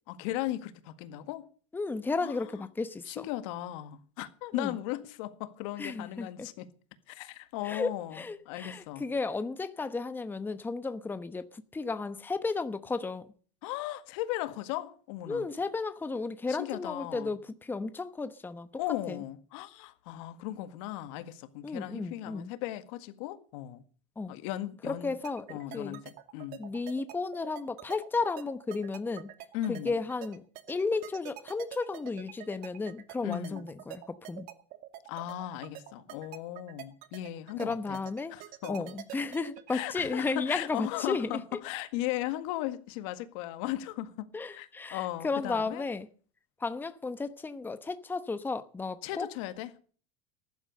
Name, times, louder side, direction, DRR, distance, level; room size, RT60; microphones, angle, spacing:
voice 1, 0.1-1.5 2.2-2.6 3.1-6.7 7.1-9.1 13.6-15.5 16.5-17.3 18.8-23.8 24.3-25.1 25.5-26.6 29.5-29.9 33.2-33.7 35.1-38.0 38.3-38.8 39.7-45.8 49.0-49.8, left 14 dB, 70° left, 1.8 m, -37 dB
voice 2, 1.7-3.3 4.5-4.8 5.8-6.5 7.6-13.3 15.3-18.7 19.1-19.2 21.6-22.5 24.2-24.4 24.8-26.0 26.6-29.3 29.7-34.5 37.6-38.3 38.7-41.4 44.3-46.1 46.6-49.3, left 3 dB, 10° left, 1.0 m, -34 dB
sound 1, 25.2-40.0, right 14 dB, 55° right, 2.3 m, -45 dB
15.0 x 11.5 x 6.7 m
supercardioid pair, 115°, 17 cm